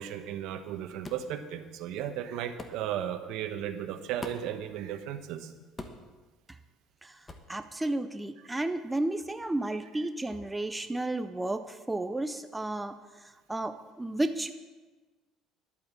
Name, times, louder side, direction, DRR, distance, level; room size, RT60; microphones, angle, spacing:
voice 1, 0.0-5.5 8.4-8.6 9.9-10.0, right 10 dB, 70° right, 8 dB, 1.1 m, -35 dB
sound 1, 1.0-1.3 2.6-2.8 4.2-4.6 5.8-6.1 7.3-7.5, left 2 dB, 15° left, 1.1 m, -42 dB
voice 2, 7.5-12.9 13.5-14.5, right 2 dB, 10° right, 9 dB, 0.4 m, -32 dB
11.5 x 8.7 x 7.3 m, 1.3 s
cardioid pair, 150°, 0 cm